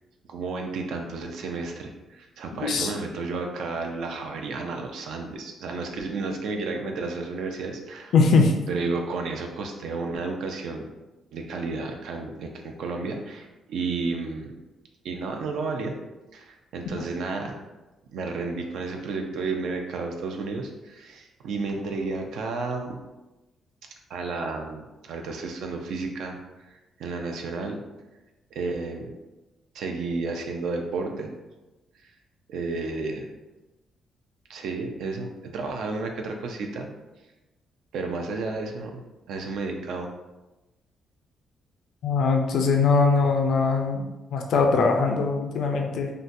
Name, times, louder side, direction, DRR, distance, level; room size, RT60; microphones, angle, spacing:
voice 1, 0.3-8.1 8.7-10.9 11.3-14.5 15.0-16.0 16.3-17.6 18.1-23.0 24.1-26.4 26.7-27.8 28.5-29.1 29.7-31.3 32.5-33.3 34.5-36.9 37.9-39.0 39.3-40.1, right 3 dB, 80° right, 3 dB, 0.4 m, -32 dB
voice 2, 8.1-8.5 17.0-17.1 42.0-46.1, left 4 dB, 70° left, 3 dB, 0.3 m, -21 dB
3.8 x 2.2 x 2.5 m, 1.0 s
cardioid pair, 140°, 0 cm